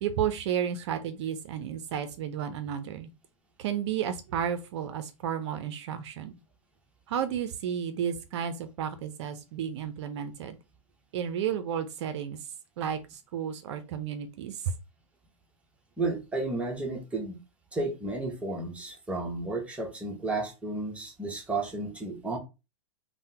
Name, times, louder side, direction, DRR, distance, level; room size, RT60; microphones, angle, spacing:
voice 1, 0.0-3.1 3.6-6.3 7.1-10.6 11.1-12.4 12.8-14.7, right 8 dB, 60° right, 9 dB, 0.4 m, -32 dB
voice 2, 16.0-17.4 17.7-22.4, right 2 dB, 5° right, 1 dB, 0.8 m, -32 dB
3.5 x 2.1 x 2.7 m, 0.28 s
hypercardioid pair, 120°, 16 cm